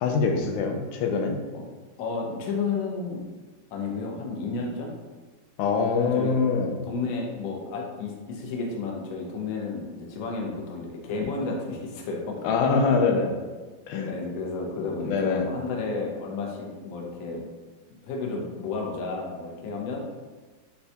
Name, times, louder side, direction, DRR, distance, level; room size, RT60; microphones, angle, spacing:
voice 1, 0.0-1.4 5.6-6.7 12.4-13.3 13.9-14.1 15.0-15.5, left 5 dB, 90° left, 4 dB, 1.4 m, -24 dB
voice 2, 2.0-3.2 3.7-5.0 6.0-6.3 6.8-12.4 14.1-17.5 18.0-20.0, left 4 dB, 65° left, -1 dB, 0.9 m, -32 dB
6.6 x 2.2 x 2.8 m, 1.3 s
omnidirectional pair, 2.1 m